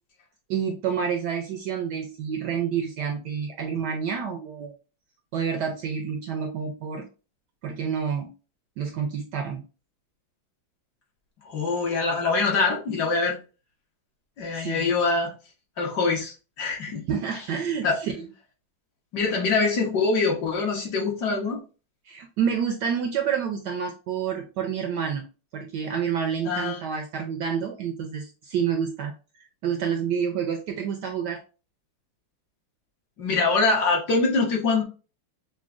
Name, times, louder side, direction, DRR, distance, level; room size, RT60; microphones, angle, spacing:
voice 1, 0.5-4.7 5.3-7.1 7.6-8.3 8.8-9.6 14.5-14.9 17.1-18.3 22.1-25.2 25.5-29.1 29.6-31.4, right 7 dB, 75° right, 3 dB, 1.0 m, -28 dB
voice 2, 11.4-13.4 14.4-15.3 15.8-17.0 17.8-18.0 19.1-21.6 26.4-26.8 33.2-34.8, left 4 dB, 60° left, -1 dB, 1.5 m, -24 dB
5.8 x 2.2 x 2.4 m, 0.33 s
omnidirectional pair, 2.2 m